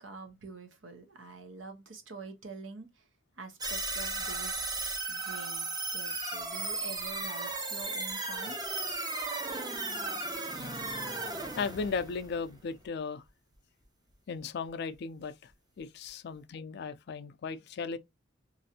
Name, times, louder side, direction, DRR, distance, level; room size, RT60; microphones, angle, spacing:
voice 1, 0.0-3.1 3.4-4.6 5.1-8.8, right 4 dB, 80° right, 0.8 m, -46 dB
sound 1, 3.6-12.9, right 3 dB, 20° right, 0.5 m, -35 dB
voice 2, 11.6-13.2 14.3-15.5 15.8-18.0, left 5 dB, 60° left, 0.4 m, -36 dB
3.1 x 2.5 x 2.7 m
head